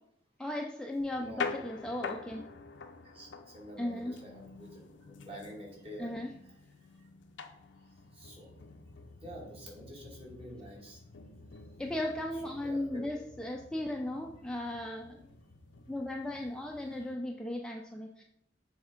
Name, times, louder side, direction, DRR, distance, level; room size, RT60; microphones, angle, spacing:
voice 1, 0.4-2.5 3.8-4.1 6.0-6.3 11.8-15.2 15.9-18.2, left 1 dB, 5° left, 1 dB, 0.4 m, -36 dB
sound 1, 1.0-17.1, left 4 dB, 90° left, 0.6 m, -46 dB
voice 2, 1.1-1.5 3.0-6.1 8.1-8.5 9.2-11.0 12.6-13.2 16.8-17.0, equal, 30° right, -3 dB, 2.1 m, -47 dB
7.2 x 3.5 x 5.1 m, 0.74 s
head